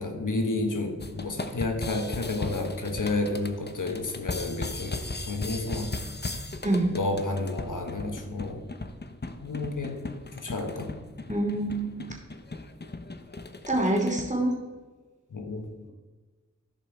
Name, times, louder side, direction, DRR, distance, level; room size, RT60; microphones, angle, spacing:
voice 1, 0.0-6.0 6.9-8.7 9.4-10.0 10.3-10.9 15.3-15.7, left 2 dB, 80° left, 4 dB, 1.3 m, -31 dB
sound 1, 1.0-14.3, left 2 dB, 35° left, 0.9 m, -37 dB
voice 2, 11.3-11.9 13.7-14.5, right 1 dB, 25° right, -1 dB, 2.9 m, -25 dB
15.0 x 5.3 x 4.6 m, 1.3 s
cardioid pair, 40°, 31 cm